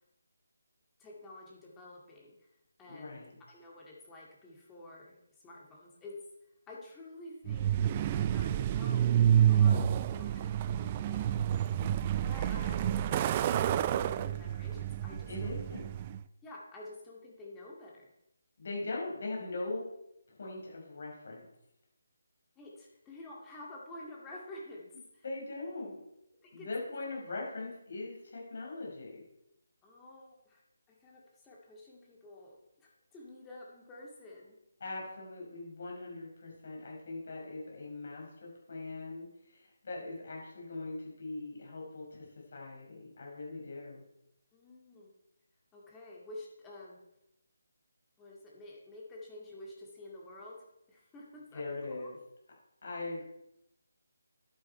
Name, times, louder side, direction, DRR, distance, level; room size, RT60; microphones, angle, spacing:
voice 1, 1.0-2.5 2.8-6.2 6.7-7.8 8.1-9.1 9.5-10.8 11.0-11.3 12.2-15.5 16.4-18.1 22.6-25.2 26.4-26.7 29.8-30.6 30.9-34.6 44.5-45.1 45.7-47.0 48.2-52.1, left 1 dB, 10° left, -3 dB, 2.1 m, -50 dB
voice 2, 2.9-3.3 10.7-11.5 15.3-15.8 18.6-19.9 20.3-21.5 25.2-26.0 26.5-29.2 34.8-42.3 42.5-44.0 51.5-52.2 52.8-53.2, left 2 dB, 55° left, -2 dB, 5.1 m, -41 dB
Truck, 7.5-16.2, right 10 dB, 25° right, 0.3 m, -29 dB
11.0 x 9.0 x 4.4 m, 0.84 s
figure-of-eight pair, 160°, 0 cm